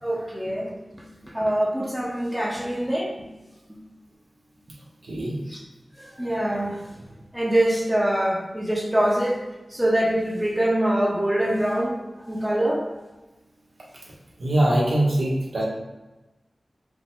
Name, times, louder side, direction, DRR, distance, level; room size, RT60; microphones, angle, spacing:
voice 1, 0.0-3.3 3.7-3.8 5.5-5.6 6.0-6.8 7.3-9.4 9.7-11.9 12.2-12.9, right 1 dB, 5° right, -2 dB, 0.8 m, -24 dB
voice 2, 14.4-15.7, right 1 dB, 80° right, -4 dB, 1.1 m, -22 dB
5.0 x 2.2 x 3.7 m, 1.1 s
wide cardioid pair, 90°, 0 cm